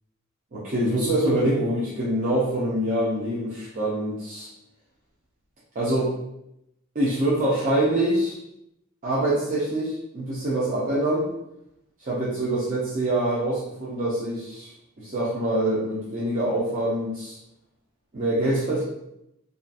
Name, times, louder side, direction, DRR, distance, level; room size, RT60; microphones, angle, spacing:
voice 1, 0.5-4.5 5.7-6.1 6.9-8.4 9.0-11.3 12.0-14.7 15.0-17.3 18.1-18.8, right 1 dB, 35° right, -8 dB, 0.5 m, -25 dB
2.7 x 2.4 x 2.3 m, 0.83 s
head